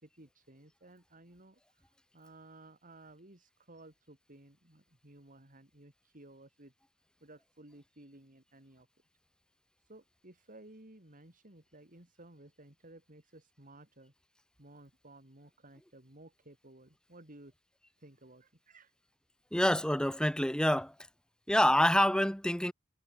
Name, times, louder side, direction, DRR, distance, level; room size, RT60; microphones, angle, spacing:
voice 1, 0.0-6.7 7.2-8.9 9.9-14.1 14.6-17.5 18.0-18.9, right 2 dB, 40° right, 3.7 m, -56 dB
voice 2, 19.5-20.9 21.5-22.7, left 1 dB, 5° left, 1.5 m, -27 dB
head